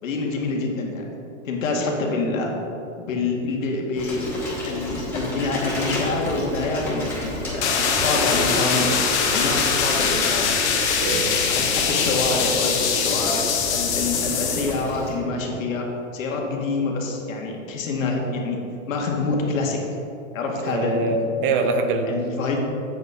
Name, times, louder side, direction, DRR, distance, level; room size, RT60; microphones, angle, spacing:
voice 1, 0.0-1.2 1.5-2.5 3.0-4.3 4.7-9.0 9.2-10.6 11.5-13.4 13.7-15.9 16.1-18.6 18.9-19.8 20.3-21.2 21.6-21.7 22.1-22.6, left 3 dB, 75° left, 0 dB, 2.1 m, -26 dB
Bicycle, 4.0-15.1, left 1 dB, 5° left, 2.3 m, -31 dB
sound 1, 7.6-14.8, left 6 dB, 60° left, 1.4 m, -23 dB
voice 2, 11.0-11.4 20.6-22.2, right 3 dB, 40° right, 6 dB, 0.9 m, -23 dB
8.2 x 7.1 x 5.0 m, 2.8 s
hypercardioid pair, 145°, 40 cm